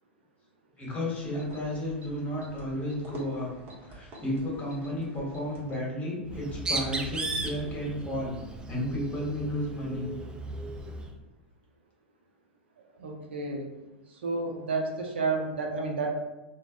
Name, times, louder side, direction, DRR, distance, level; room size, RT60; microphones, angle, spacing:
voice 1, 0.8-3.5 3.9-8.4 8.7-10.1, left 1 dB, 25° left, -4 dB, 1.1 m, -32 dB
sound 1, 1.1-6.0, equal, 35° right, 0.9 m, -49 dB
Bird, 6.3-11.1, right 2 dB, 15° right, 0.3 m, -36 dB
voice 2, 13.0-13.7 14.2-16.1, right 3 dB, 75° right, 1 dB, 0.5 m, -30 dB
3.1 x 2.0 x 2.4 m, 1.1 s
hypercardioid pair, 95°, 6 cm